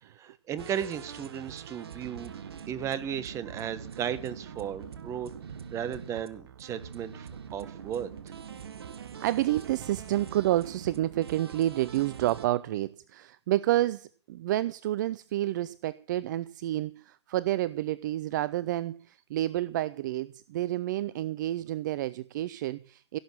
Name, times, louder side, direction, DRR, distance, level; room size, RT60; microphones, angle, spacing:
voice 1, 0.0-2.3 2.7-5.3 5.7-8.1, right 9 dB, 20° right, 1.4 m, -35 dB
sound 1, 0.6-12.5, right 7 dB, 60° right, 1.5 m, -44 dB
voice 2, 9.2-23.2, right 14 dB, 45° right, 0.5 m, -29 dB
16.5 x 8.0 x 7.4 m
figure-of-eight pair, 120°, 15 cm